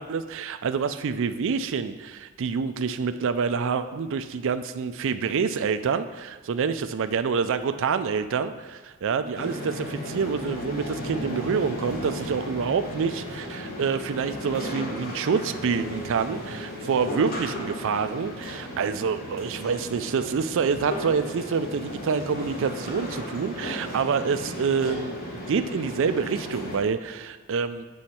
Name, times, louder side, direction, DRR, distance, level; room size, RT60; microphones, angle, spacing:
voice 1, 0.0-27.8, right 6 dB, 60° right, 10 dB, 0.4 m, -27 dB
sound 1, 9.3-26.8, left 1 dB, 45° left, 1.5 m, -35 dB
sound 2, 15.8-25.5, equal, 10° right, 0.7 m, -54 dB
7.9 x 6.2 x 4.3 m, 1.3 s
head